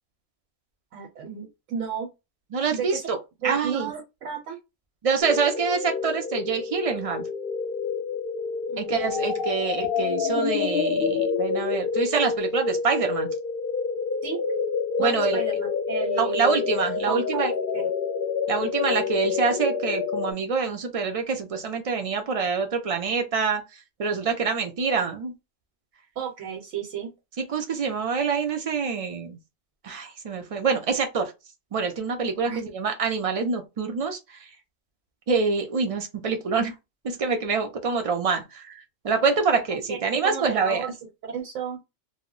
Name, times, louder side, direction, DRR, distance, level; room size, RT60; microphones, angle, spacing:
voice 1, 0.9-2.1 2.7-3.1 3.4-4.6 8.7-9.3 14.2-14.4 15.0-16.6 17.0-17.5 26.2-27.1 32.4-32.6 39.9-40.0 40.2-40.9 41.3-41.8, right 7 dB, 90° right, 1.1 m, -33 dB
voice 2, 2.5-3.2 3.4-3.9 5.0-7.3 8.8-13.3 15.0-15.4 16.2-17.5 18.5-25.3 27.5-29.4 29.8-31.3 31.7-34.5 35.3-36.7 37.0-40.9, right 5 dB, 55° right, 0.4 m, -26 dB
sound 1, 5.2-20.3, left 5 dB, 60° left, 0.7 m, -28 dB
2.2 x 2.1 x 3.7 m
omnidirectional pair, 1.3 m